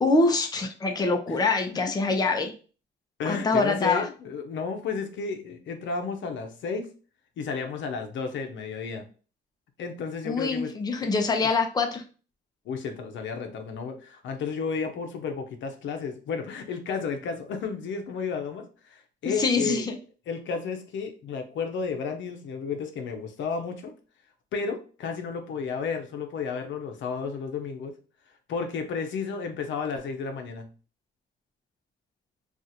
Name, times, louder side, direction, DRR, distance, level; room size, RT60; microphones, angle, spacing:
voice 1, 0.0-2.5 3.3-4.1 10.2-12.0 19.4-20.0, left 3 dB, 20° left, 4 dB, 0.6 m, -24 dB
voice 2, 3.2-6.9 7.4-9.0 9.8-10.7 11.0-11.1 12.7-19.9 20.3-23.9 24.5-27.9 28.5-30.7, left 5 dB, 70° left, 5 dB, 0.7 m, -32 dB
2.5 x 2.5 x 4.1 m, 0.37 s
cardioid pair, 90°, 20 cm